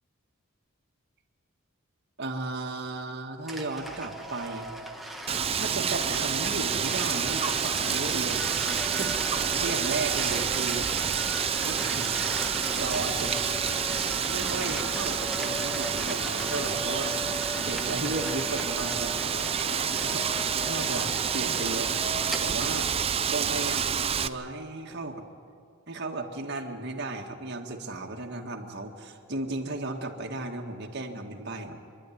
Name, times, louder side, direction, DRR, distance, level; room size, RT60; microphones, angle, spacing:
voice 1, 2.2-4.7 5.6-8.5 8.8-10.9 11.6-12.2 12.8-13.4 14.3-17.2 17.6-19.3 19.9-20.3 20.6-21.9 22.4-22.9 23.3-25.2 25.9-31.8, right 2 dB, 55° right, 2 dB, 1.9 m, -35 dB
sound 1, 3.5-23.0, right 1 dB, ahead, 1.2 m, -37 dB
Wind, 5.3-24.3, right 7 dB, 30° right, 0.5 m, -29 dB
27.5 x 11.5 x 9.4 m, 2.4 s
head